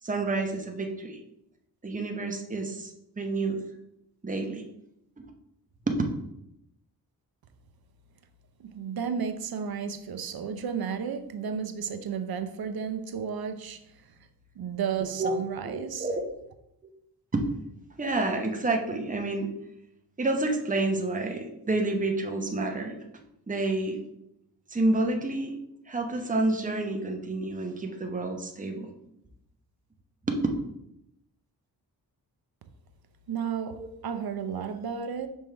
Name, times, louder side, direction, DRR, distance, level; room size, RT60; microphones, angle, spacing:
voice 1, 0.0-1.2 1.8-3.6 4.2-4.6 5.2-5.3 5.9-6.0 15.0-15.3 15.6-16.2 17.3-17.5 18.0-19.5 20.2-23.0 23.5-24.0 24.7-25.6 25.9-28.9 30.3-30.4 33.8-33.9, right 2 dB, 20° right, 0.9 m, -29 dB
voice 2, 8.6-13.8 14.6-16.1 33.3-35.3, right 7 dB, 65° right, 0.7 m, -33 dB
6.3 x 3.6 x 4.5 m
cardioid pair, 85°, 40 cm